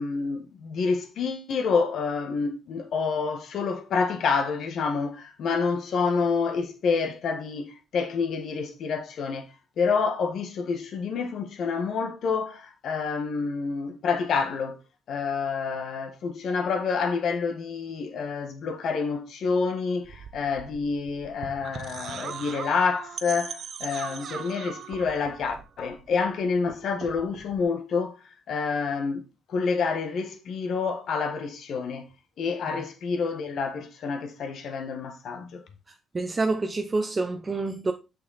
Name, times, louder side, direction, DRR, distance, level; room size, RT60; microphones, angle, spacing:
voice 1, 0.0-14.8 15.1-28.2 28.5-29.2 29.5-32.1 32.4-35.6, left 5 dB, 65° left, 1.4 m, -28 dB
sound 1, 20.0-26.3 26.5-27.6, right 7 dB, 60° right, 0.9 m, -40 dB
voice 2, 35.9-37.9, right 3 dB, 25° right, 0.7 m, -28 dB
6.4 x 5.9 x 4.1 m
cardioid pair, 90°, 0 cm